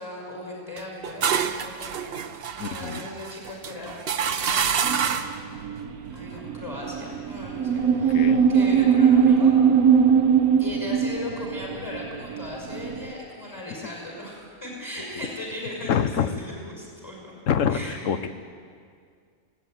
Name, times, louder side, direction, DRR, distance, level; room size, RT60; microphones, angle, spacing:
voice 1, 0.0-2.1 2.5-5.1 6.1-9.5 10.6-17.3 17.7-18.0, left 1 dB, 10° left, -4 dB, 5.6 m, -37 dB
sound 1, 0.8-5.5, right 7 dB, 50° right, 0.9 m, -27 dB
voice 2, 2.6-3.1 8.1-8.5 15.9-16.3 17.5-18.3, left 7 dB, 65° left, 11 dB, 1.3 m, -25 dB
sound 2, 4.8-13.1, right 7 dB, 85° right, 1.4 m, -21 dB
19.5 x 16.5 x 9.1 m, 2.2 s
omnidirectional pair, 1.5 m